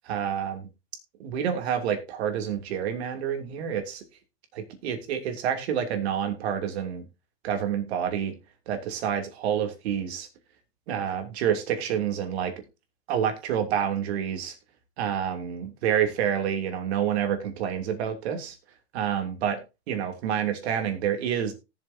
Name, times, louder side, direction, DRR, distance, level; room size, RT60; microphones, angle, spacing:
voice 1, 0.0-0.7 1.2-4.0 4.5-7.0 7.4-8.3 8.7-10.3 10.9-12.5 13.1-14.5 15.0-18.6 18.9-19.6 19.9-21.5, right 9 dB, 65° right, 6 dB, 3.1 m, -28 dB
18.5 x 7.2 x 2.8 m, 0.26 s
hypercardioid pair, 125°, 34 cm